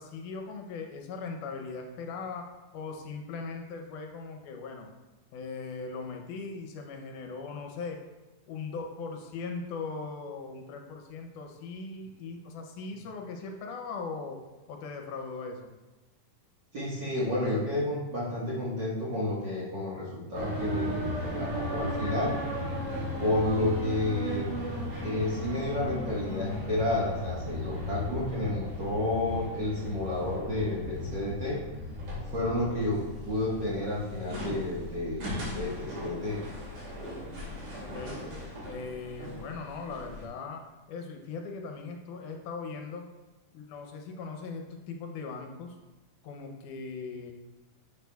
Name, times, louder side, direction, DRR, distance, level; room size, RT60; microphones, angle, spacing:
voice 1, 0.0-4.9 5.3-8.0 8.5-14.4 14.7-15.7 37.8-38.2 38.7-43.1 43.5-44.6 44.9-45.8 46.2-47.3, left 4 dB, 75° left, 3 dB, 2.2 m, -39 dB
voice 2, 16.7-22.3 23.2-24.5 25.0-31.6 32.3-36.4, left 1 dB, 45° right, -8 dB, 1.6 m, -31 dB
sound 1, 20.3-40.2, left 1 dB, 75° right, 3.9 m, -36 dB
10.5 x 7.2 x 2.3 m, 1.1 s
omnidirectional pair, 3.7 m